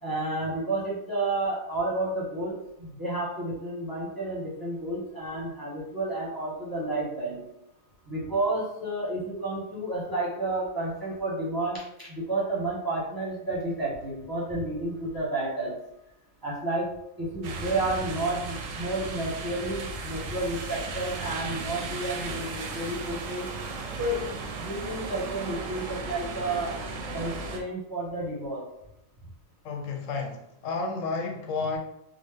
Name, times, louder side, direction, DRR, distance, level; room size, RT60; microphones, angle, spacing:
voice 1, 0.0-7.5 8.1-15.8 16.4-16.9 17.2-23.5 24.0-24.3 24.6-28.6, right 2 dB, 20° right, -7 dB, 0.8 m, -31 dB
sound 1, 17.4-27.6, right 3 dB, 90° right, 1.0 m, -36 dB
voice 2, 29.6-31.8, left 4 dB, 80° left, 2 dB, 1.0 m, -31 dB
3.5 x 2.0 x 3.3 m, 0.83 s
omnidirectional pair, 1.3 m